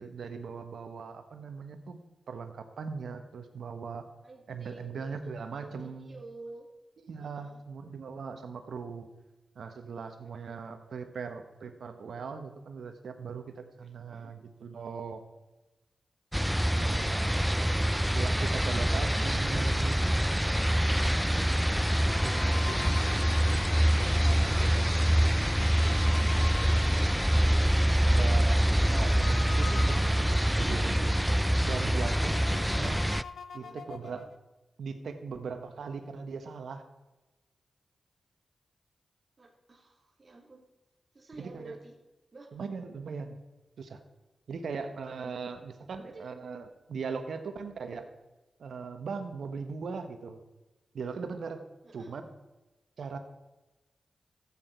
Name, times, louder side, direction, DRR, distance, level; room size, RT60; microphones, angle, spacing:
voice 1, 0.0-2.0 2.3-4.0 4.5-6.2 7.0-9.1 9.5-15.2 16.8-17.5 18.1-20.0 22.1-23.7 24.0-24.1 24.4-24.9 27.9-31.3 31.6-33.0 33.5-34.3 34.8-36.8 41.3-41.7 42.5-43.4 43.8-44.0 44.5-48.1 48.6-50.4 50.9-51.6 51.9-52.3 53.0-53.2, right 5 dB, 80° right, 7 dB, 1.3 m, -39 dB
voice 2, 4.2-6.7 7.2-7.6 10.2-10.6 13.8-14.3 16.5-18.1 20.8-22.0 26.3-27.7 28.0-28.2 33.6-34.3 39.4-40.6 41.1-41.9 42.3-42.6 45.2-45.6 46.0-46.3 51.8-52.1, right 2 dB, 45° right, -1 dB, 3.0 m, -51 dB
sound 1, 16.3-33.2, equal, 5° right, 0.4 m, -25 dB
sound 2, 21.5-30.8 31.3-31.4 31.6-34.4, left 6 dB, 80° left, 0.6 m, -45 dB
14.0 x 8.7 x 4.5 m, 1.1 s
cardioid pair, 50°, 0 cm